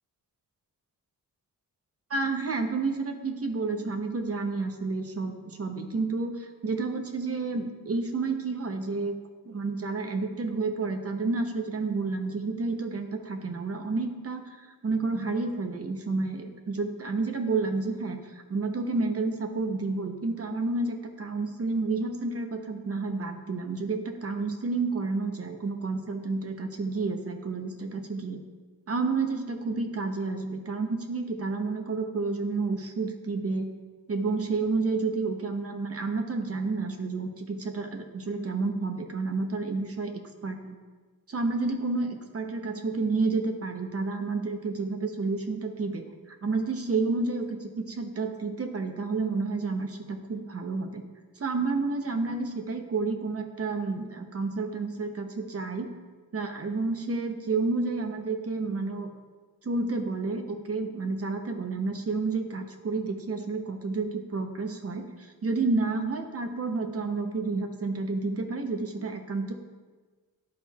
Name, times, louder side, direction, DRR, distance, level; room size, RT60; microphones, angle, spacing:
voice 1, 2.1-9.2 9.4-14.6 14.8-28.4 28.9-33.7 34.1-40.8 41.3-51.0 51.4-55.9 56.3-59.1 59.6-69.5, right 3 dB, 40° right, 5 dB, 0.7 m, -30 dB
11.5 x 4.3 x 2.3 m, 1.4 s
wide cardioid pair, 110°, 35 cm